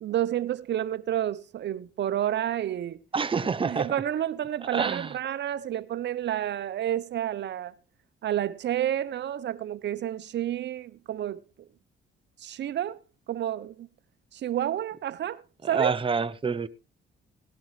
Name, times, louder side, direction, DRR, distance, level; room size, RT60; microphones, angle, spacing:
voice 1, 0.0-3.0 3.6-7.7 8.2-11.4 12.4-13.0 13.3-13.9 14.3-15.4 15.7-15.9, right 11 dB, 60° right, 0.9 m, -30 dB
voice 2, 3.1-3.9 4.7-5.1 15.6-16.7, right 5 dB, 25° right, 0.8 m, -27 dB
17.5 x 11.5 x 3.3 m
cardioid pair, 90°, 20 cm